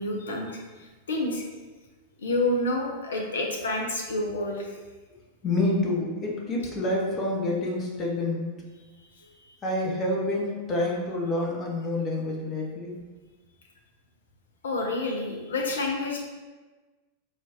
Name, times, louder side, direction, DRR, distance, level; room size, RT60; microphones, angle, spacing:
voice 1, 0.0-1.4 2.2-4.7 9.2-9.6 14.6-16.2, left 2 dB, 65° left, 0 dB, 0.6 m, -29 dB
voice 2, 5.4-8.5 9.6-13.0, left 2 dB, 25° left, -2 dB, 0.8 m, -28 dB
4.4 x 2.4 x 2.9 m, 1.3 s
figure-of-eight pair, 90°, 0 cm